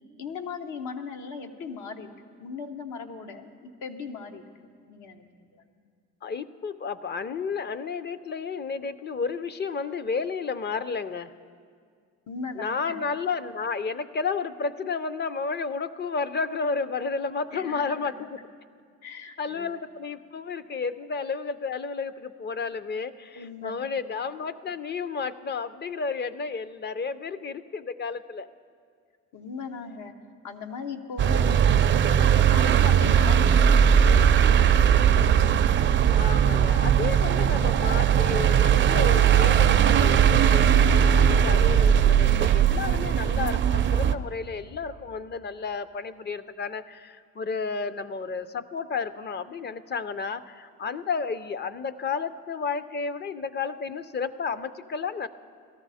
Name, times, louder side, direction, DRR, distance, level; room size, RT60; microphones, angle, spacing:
voice 1, 0.2-5.6 12.3-13.0 17.5-18.3 19.0-19.7 23.4-23.9 29.3-30.1 30.4-35.1, left 4 dB, 80° left, 5 dB, 1.0 m, -39 dB
voice 2, 6.2-11.3 12.6-18.4 19.4-28.5 36.1-55.3, left 5 dB, 35° left, 13 dB, 0.5 m, -32 dB
sound 1, 31.2-44.2, right 8 dB, 40° right, 0.4 m, -19 dB
17.5 x 13.0 x 4.1 m, 2.1 s
cardioid pair, 90°, 30 cm